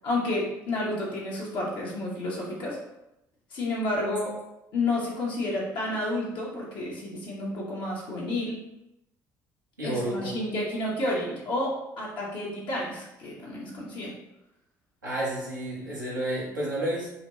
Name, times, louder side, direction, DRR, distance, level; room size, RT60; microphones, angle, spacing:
voice 1, 0.0-2.8 3.5-4.3 4.7-8.6 9.8-14.1, left 2 dB, 50° left, -5 dB, 1.0 m, -30 dB
voice 2, 9.8-10.3 15.0-17.1, right 1 dB, 85° right, -7 dB, 1.0 m, -30 dB
4.0 x 2.2 x 3.0 m, 0.89 s
figure-of-eight pair, 55°, 10 cm